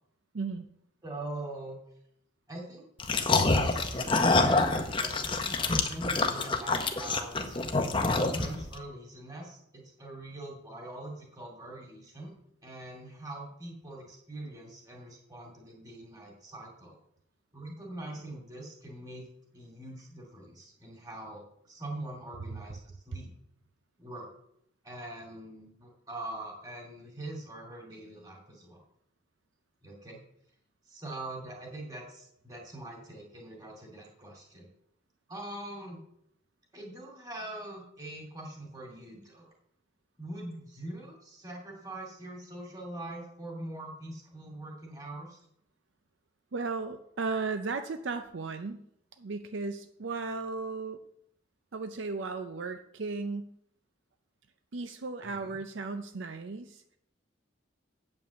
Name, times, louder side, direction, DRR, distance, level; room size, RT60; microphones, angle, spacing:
voice 1, 0.3-0.7 46.5-48.8 49.2-51.0 51.7-53.5 54.7-57.0, right 4 dB, 65° right, 8 dB, 0.5 m, -35 dB
voice 2, 1.0-1.8 2.5-4.0 4.3-12.3 12.6-17.0 17.5-19.3 19.5-23.3 24.0-24.3 24.8-28.8 29.8-30.2 30.9-34.7 35.3-36.0 36.7-39.5 40.2-45.4 55.2-55.6, right 1 dB, 20° right, 0 dB, 2.4 m, -43 dB
Zombies eating, 3.0-8.7, left 3 dB, 25° left, 0.7 m, -26 dB
9.0 x 5.3 x 6.9 m, 0.73 s
head